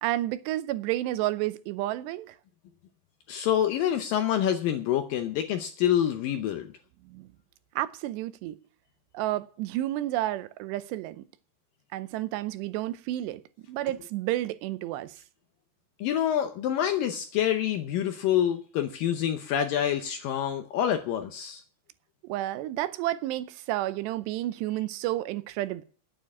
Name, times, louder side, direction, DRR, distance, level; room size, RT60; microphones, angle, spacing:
voice 1, 0.0-2.4 7.1-7.3 7.8-8.6 9.1-11.2 11.9-13.4 13.7-15.2 22.2-25.8, right 15 dB, 85° right, 2.9 m, -31 dB
voice 2, 3.3-6.7 16.0-21.6, left 10 dB, 75° left, 2.1 m, -27 dB
9.7 x 9.0 x 8.5 m
omnidirectional pair, 4.8 m